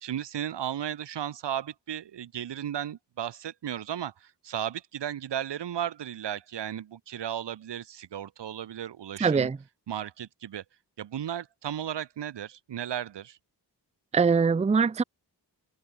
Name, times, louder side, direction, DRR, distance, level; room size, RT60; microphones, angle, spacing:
voice 1, 0.0-9.5 9.9-10.6 11.0-13.4, right 10 dB, 80° right, 0.8 m, -35 dB
voice 2, 9.2-9.6 14.1-15.0, right 5 dB, 15° right, 0.4 m, -22 dB
open air
wide cardioid pair, 65°, 41 cm